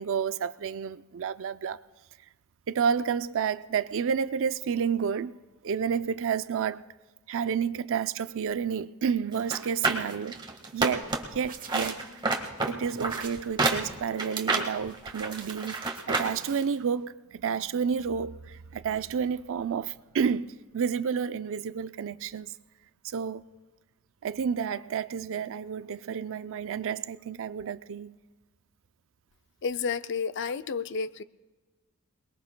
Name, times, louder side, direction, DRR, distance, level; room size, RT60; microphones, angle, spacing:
voice 1, 0.0-1.8 2.7-5.4 5.6-6.8 7.3-10.4 10.7-12.1 12.7-22.5 23.0-23.4 24.2-28.1, right 7 dB, 60° right, 0.4 m, -30 dB
sound 1, 9.4-11.4 11.7-16.3 16.6-16.7, right 3 dB, 20° right, 1.6 m, -29 dB
sound 2, 11.0-16.6, right 4 dB, 40° right, 1.3 m, -46 dB
voice 2, 29.6-31.2, left 5 dB, 55° left, 0.4 m, -31 dB
27.5 x 21.0 x 2.2 m
head